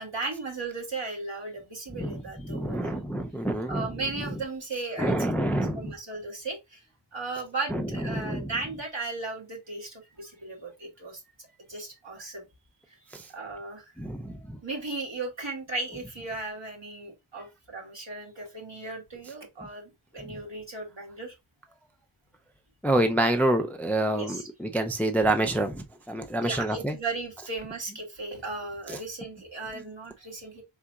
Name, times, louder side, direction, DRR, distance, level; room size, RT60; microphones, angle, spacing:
voice 1, 0.0-2.9 3.7-6.8 7.1-11.2 11.7-12.4 12.9-13.0 13.3-13.9 14.6-21.3 24.1-24.5 26.4-30.6, right 3 dB, 65° right, 2.0 m, -36 dB
voice 2, 2.0-3.9 5.0-5.9 7.7-7.8 8.1-8.5 13.1-13.3 14.0-14.6 20.2-20.3 22.8-26.9 28.9-29.0, right 1 dB, 5° left, 0.4 m, -27 dB
4.2 x 3.7 x 2.3 m
wide cardioid pair, 65°, 48 cm